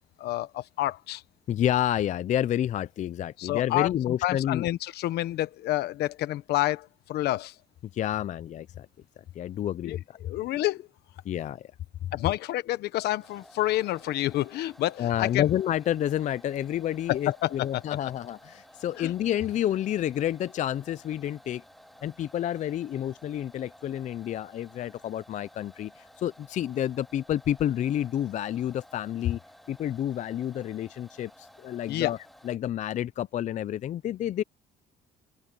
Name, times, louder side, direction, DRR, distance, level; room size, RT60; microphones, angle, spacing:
voice 1, 0.2-1.2 3.4-7.5 9.8-10.9 12.1-15.4 17.1-17.8 19.0-19.1 31.9-32.1, left 15 dB, 75° left, 1.2 m, -29 dB
voice 2, 1.5-4.7 7.9-8.9 9.4-10.2 11.3-11.7 12.0-12.1 15.0-21.6 22.0-29.4 29.7-32.2 32.4-34.4, left 11 dB, 45° left, 0.4 m, -29 dB
sound 1, 13.2-32.6, equal, ahead, 3.8 m, -54 dB
open air
cardioid pair, 110°, 17 cm